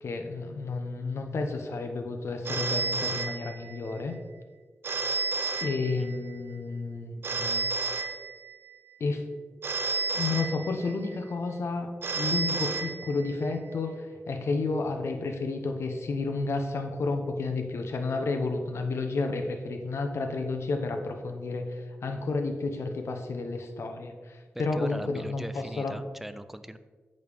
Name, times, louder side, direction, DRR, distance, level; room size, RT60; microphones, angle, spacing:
voice 1, 0.0-4.1 5.6-7.6 9.0-9.3 10.1-26.0, left 3 dB, 80° left, 5 dB, 0.9 m, -31 dB
Telephone, 2.4-3.9 4.8-6.3 7.2-8.7 9.6-11.1 12.0-13.5, right 3 dB, 60° right, 0.7 m, -31 dB
voice 2, 24.5-26.8, right 1 dB, 5° right, 12 dB, 0.5 m, -40 dB
8.6 x 6.6 x 3.6 m, 1.5 s
cardioid pair, 70°, 4 cm